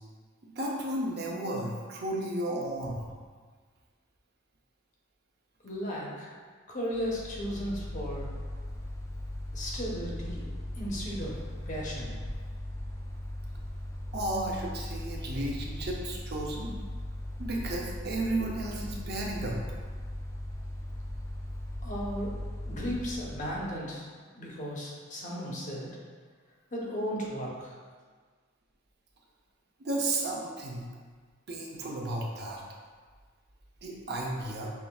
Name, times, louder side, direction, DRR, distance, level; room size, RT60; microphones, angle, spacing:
voice 1, 0.4-3.0 14.1-16.7 17.4-19.6 29.8-30.9 31.5-32.6 33.8-34.7, right 1 dB, 55° right, -2 dB, 0.6 m, -33 dB
voice 2, 5.6-6.3 6.7-8.3 9.5-11.4 11.7-12.1 21.8-22.3 22.6-24.1 24.3-26.0 26.7-27.7, equal, 40° left, -4 dB, 0.8 m, -35 dB
Mechanical fan, 6.9-23.8, left 1 dB, 15° left, 0.4 m, -38 dB
5.6 x 3.2 x 2.3 m, 1.5 s
head